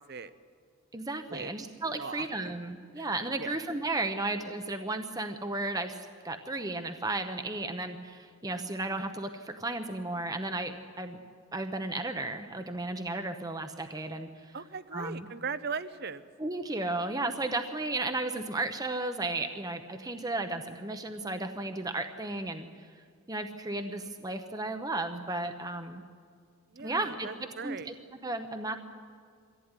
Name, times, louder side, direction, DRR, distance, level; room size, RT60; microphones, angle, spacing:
voice 1, 0.9-11.2 11.5-14.6 14.9-15.3 16.4-22.7 23.3-26.0 26.8-27.9 28.2-28.8, right 2 dB, 15° right, 7 dB, 0.8 m, -34 dB
voice 2, 2.0-2.3 3.0-3.1 3.4-3.6 14.5-16.3 26.7-27.9, right 5 dB, 45° right, 14 dB, 0.8 m, -38 dB
23.0 x 15.0 x 9.7 m, 2.1 s
head